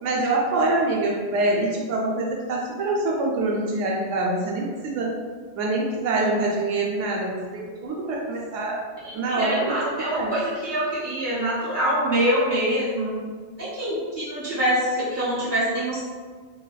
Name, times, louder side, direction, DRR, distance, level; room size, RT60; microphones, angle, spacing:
voice 1, 0.0-5.2 5.6-8.8 9.1-9.8 10.1-10.4, right 2 dB, 85° right, -2 dB, 0.9 m, -25 dB
voice 2, 9.0-13.2 13.6-16.0, right 1 dB, 20° right, -9 dB, 1.3 m, -25 dB
3.2 x 3.1 x 2.3 m, 1.5 s
omnidirectional pair, 1.2 m